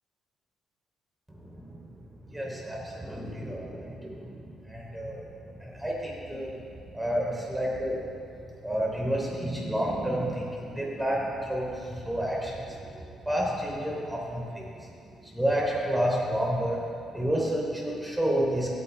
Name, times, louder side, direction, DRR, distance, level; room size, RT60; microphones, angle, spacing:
voice 1, 1.3-6.6 6.8-8.0 8.4-16.8 17.1-18.7, equal, 10° right, -3 dB, 3.3 m, -30 dB
16.0 x 9.6 x 3.5 m, 2.5 s
cardioid pair, 90°, 0 cm